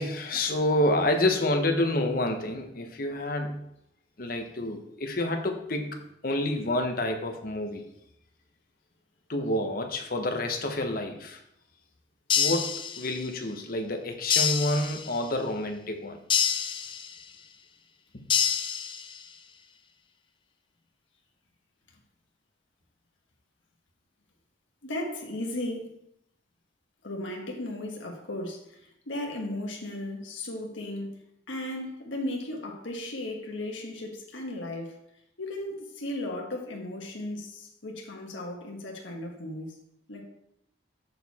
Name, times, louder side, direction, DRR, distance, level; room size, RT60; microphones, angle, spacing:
voice 1, 0.0-3.6 4.2-7.8 9.3-11.4 12.4-16.2 18.1-18.3, left 1 dB, 50° left, 1.0 m, -28 dB
sound 1, 12.3-13.4 14.3-15.4 16.3-17.4 18.3-19.3, left 8 dB, 25° left, 0.4 m, -27 dB
voice 2, 24.8-26.0 27.0-35.0 35.4-39.8 40.1-40.3, left 1 dB, 80° left, 1.4 m, -36 dB
6.8 x 6.4 x 4.2 m
head